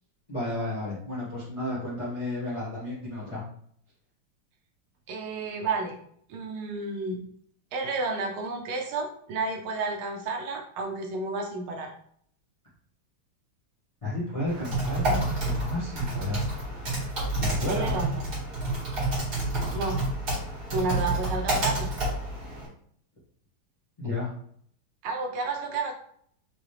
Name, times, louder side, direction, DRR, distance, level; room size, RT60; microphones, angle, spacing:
voice 1, 0.3-3.4 14.0-16.6 17.4-17.9 24.0-24.3, left 2 dB, 20° left, -9 dB, 1.1 m, -32 dB
voice 2, 5.1-6.0 6.3-7.2 7.7-11.9 17.7-18.2 19.7-20.0 20.7-21.9 25.0-25.9, right 3 dB, 75° right, 2 dB, 1.6 m, -31 dB
Typing, 14.5-22.7, right 2 dB, 45° right, 2.5 m, -29 dB
5.0 x 3.0 x 3.2 m, 0.63 s
omnidirectional pair, 2.4 m